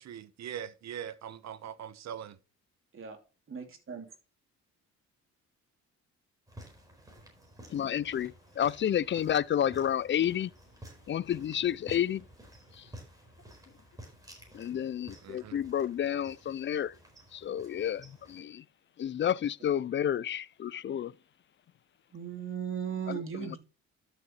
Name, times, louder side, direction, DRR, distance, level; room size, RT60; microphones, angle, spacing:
voice 1, 0.0-2.4 15.2-15.6, right 9 dB, 60° right, 1.0 m, -41 dB
voice 2, 3.5-4.0 22.1-23.6, right 7 dB, 45° right, 2.7 m, -37 dB
sound 1, 6.5-18.4, right 1 dB, 10° right, 4.3 m, -53 dB
voice 3, 7.7-10.5 11.1-12.2 14.5-16.9 17.3-18.6 19.0-21.1 23.1-23.6, left 10 dB, 40° left, 0.4 m, -30 dB
12.0 x 6.5 x 3.0 m
cardioid pair, 90°, 30 cm